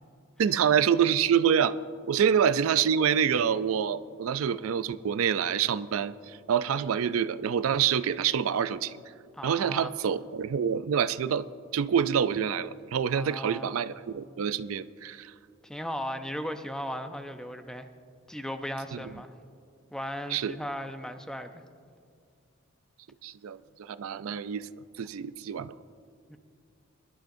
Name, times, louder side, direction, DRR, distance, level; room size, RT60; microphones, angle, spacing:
voice 1, 0.4-1.7 2.1-9.0 9.4-11.5 11.7-15.3 18.9-19.0 20.3-20.6 23.2-24.7 25.0-25.7, right 8 dB, 85° right, 14 dB, 0.4 m, -26 dB
voice 2, 9.3-10.0 13.1-13.7 15.6-17.9 18.3-19.3 19.9-21.6 26.3-26.4, equal, 5° left, 7 dB, 0.5 m, -37 dB
23.0 x 11.5 x 2.6 m, 2.3 s
head